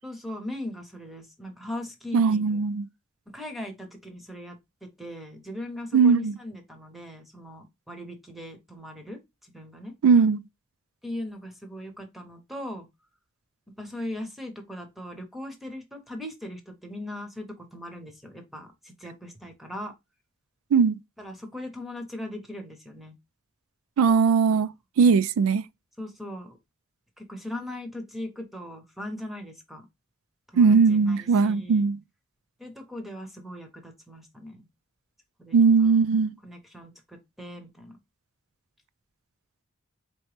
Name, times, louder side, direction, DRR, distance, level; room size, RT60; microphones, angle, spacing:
voice 1, 0.0-2.6 3.3-9.9 11.0-12.9 13.8-19.9 21.2-23.1 24.5-24.6 26.0-26.6 27.2-29.9 30.5-31.9 32.6-34.6 35.4-36.0 36.4-38.0, left 1 dB, ahead, 0.8 m, -39 dB
voice 2, 2.1-2.9 5.9-6.3 10.0-10.4 20.7-21.0 24.0-25.6 30.6-32.0 35.5-36.3, right 5 dB, 85° right, 0.3 m, -20 dB
4.3 x 3.0 x 3.2 m
head